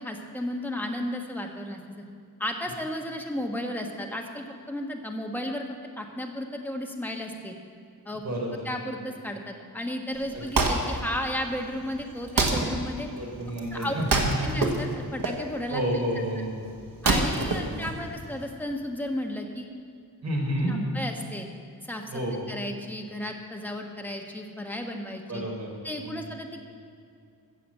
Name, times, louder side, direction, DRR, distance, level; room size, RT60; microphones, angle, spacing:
voice 1, 0.0-2.0 2.4-7.5 8.0-8.2 8.6-13.1 13.7-13.9 14.4-15.8 17.0-19.7 20.6-21.5 21.8-22.1 22.5-25.4 25.8-26.7, left 1 dB, 5° left, 1 dB, 1.3 m, -34 dB
Wood, 10.1-18.5, right 3 dB, 60° right, 1.6 m, -28 dB
voice 2, 13.1-14.5 15.7-16.5 17.3-17.7 20.2-20.8 22.1-22.4 25.3-25.7 26.0-26.2, right 1 dB, 45° right, -2 dB, 3.8 m, -30 dB
15.5 x 7.2 x 7.3 m, 2.4 s
wide cardioid pair, 135°, 37 cm